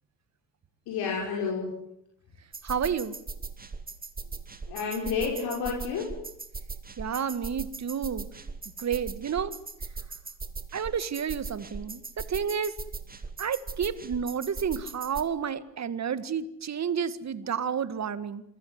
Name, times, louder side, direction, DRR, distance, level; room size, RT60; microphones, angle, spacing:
voice 1, 0.9-1.7 4.7-6.1, left 5 dB, 70° left, -2 dB, 6.3 m, -30 dB
sound 1, 2.5-15.2, right 4 dB, 20° right, 2.6 m, -39 dB
voice 2, 2.6-3.2 7.0-8.3 8.8-9.6 10.7-12.7 13.4-18.4, right 7 dB, 45° right, 14 dB, 1.9 m, -30 dB
27.0 x 15.5 x 9.6 m, 0.80 s
supercardioid pair, 70°, 39 cm